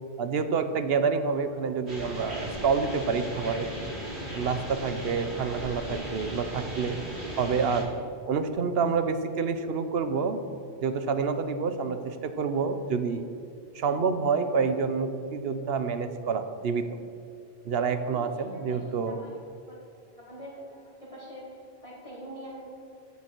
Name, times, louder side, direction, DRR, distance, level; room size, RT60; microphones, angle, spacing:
voice 1, 0.2-3.7 4.3-7.0 7.4-7.9 8.3-10.4 10.8-13.2 13.7-16.9 17.6-19.2, right 5 dB, 70° right, 9 dB, 1.0 m, -28 dB
sound 1, 1.9-7.8, equal, 85° right, 3.4 m, -37 dB
voice 2, 18.1-19.4 19.7-19.8 20.1-22.6, equal, 30° left, -5 dB, 1.8 m, -44 dB
14.0 x 7.1 x 4.5 m, 2.5 s
omnidirectional pair, 1.1 m